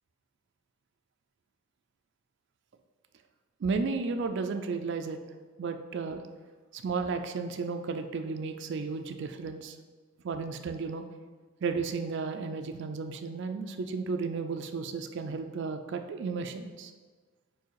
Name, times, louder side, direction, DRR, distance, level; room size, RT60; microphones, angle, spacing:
voice 1, 3.6-5.2 5.6-6.2 6.7-9.8 10.2-11.0 11.6-16.9, right 4 dB, 60° right, 7 dB, 0.4 m, -33 dB
4.9 x 4.7 x 4.6 m, 1.4 s
head